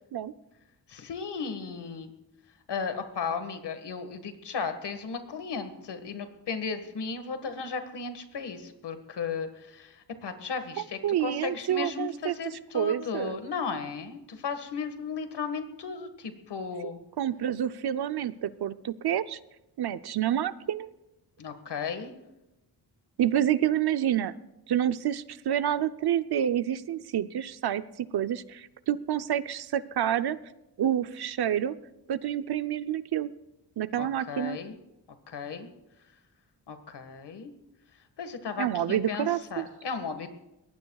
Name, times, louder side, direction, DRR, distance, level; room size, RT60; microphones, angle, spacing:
voice 1, 0.9-2.1 2.7-17.0 21.4-22.1 34.0-34.7 35.3-35.7 36.7-37.5 38.2-40.3, left 5 dB, 75° left, 8 dB, 1.8 m, -35 dB
voice 2, 11.0-12.3 12.7-13.4 16.8-16.9 17.2-19.4 19.8-20.9 23.2-24.3 24.7-30.4 30.8-31.7 32.1-33.3 33.8-34.6 38.6-39.6, right 10 dB, 65° right, 12 dB, 0.7 m, -28 dB
23.5 x 18.5 x 2.4 m, 0.95 s
cardioid pair, 95°, 41 cm